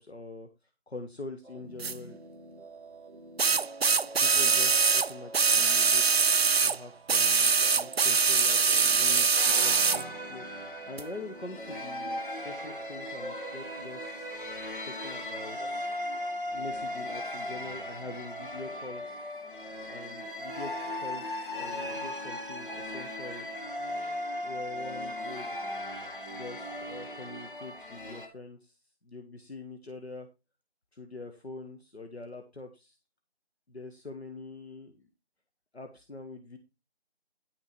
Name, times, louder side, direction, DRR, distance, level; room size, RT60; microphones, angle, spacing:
voice 1, 0.0-2.2 4.2-6.3 6.6-14.3 14.8-15.8 16.5-19.4 19.9-23.5 24.4-25.6 26.3-30.3 30.9-33.0 33.7-35.1 35.7-36.6, left 3 dB, 70° left, 5 dB, 1.6 m, -44 dB
sound 1, 1.4-15.7, right 2 dB, 20° right, 1.8 m, -48 dB
sound 2, 1.8-1.9 3.4-6.8 7.1-10.0 11.0-11.1, right 5 dB, 65° right, 0.4 m, -23 dB
sound 3, 9.4-28.3, left 1 dB, 50° left, 1.9 m, -37 dB
10.5 x 6.2 x 4.5 m, 0.26 s
figure-of-eight pair, 180°, 34 cm